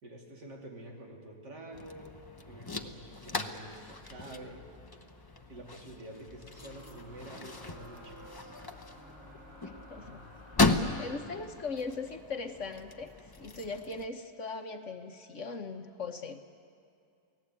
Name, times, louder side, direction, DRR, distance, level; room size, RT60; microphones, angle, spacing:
voice 1, 0.0-2.2 2.5-4.7 5.5-8.6, right 1 dB, 75° right, -1 dB, 3.6 m, -48 dB
sound 1, 1.7-14.1, left 2 dB, 20° left, 0.6 m, -36 dB
sound 2, 6.3-11.2, equal, 20° right, 7.9 m, -52 dB
voice 2, 9.6-10.2 11.0-16.4, left 4 dB, 50° left, 5 dB, 1.3 m, -39 dB
29.0 x 18.0 x 8.4 m, 2.5 s
omnidirectional pair, 1.8 m